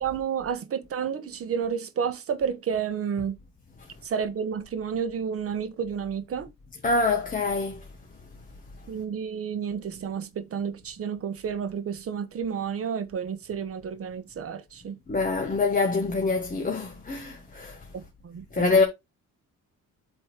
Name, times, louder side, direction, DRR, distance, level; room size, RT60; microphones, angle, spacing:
voice 1, 0.0-3.3 4.0-6.5 8.9-14.9 17.9-18.7, right 7 dB, 45° right, 1.1 m, -31 dB
voice 2, 6.8-7.8 15.1-17.8 18.5-18.8, left 3 dB, 25° left, 1.3 m, -25 dB
8.1 x 3.2 x 4.5 m
cardioid pair, 130°, 31 cm